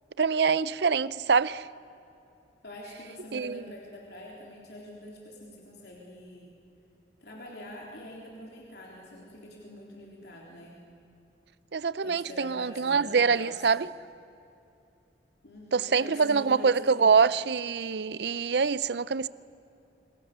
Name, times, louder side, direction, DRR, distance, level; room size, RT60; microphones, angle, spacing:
voice 1, 0.2-1.7 3.3-3.6 11.7-13.9 15.7-19.3, right 5 dB, 65° right, 0.6 m, -25 dB
voice 2, 2.6-6.6 7.2-10.8 12.0-13.7 15.4-17.1 18.2-18.4 18.8-19.1, left 1 dB, 60° left, 3.7 m, -45 dB
27.5 x 24.5 x 6.9 m
head